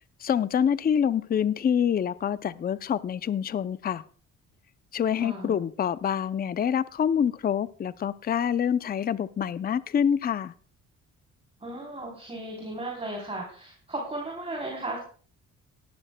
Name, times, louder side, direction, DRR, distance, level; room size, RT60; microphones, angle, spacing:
voice 1, 0.2-4.0 4.9-10.5, left 8 dB, 30° left, 16 dB, 0.5 m, -26 dB
voice 2, 5.2-5.6 11.6-15.0, right 2 dB, 20° right, -1 dB, 3.5 m, -35 dB
18.0 x 12.0 x 2.2 m, 0.43 s
cardioid pair, 90°, 30 cm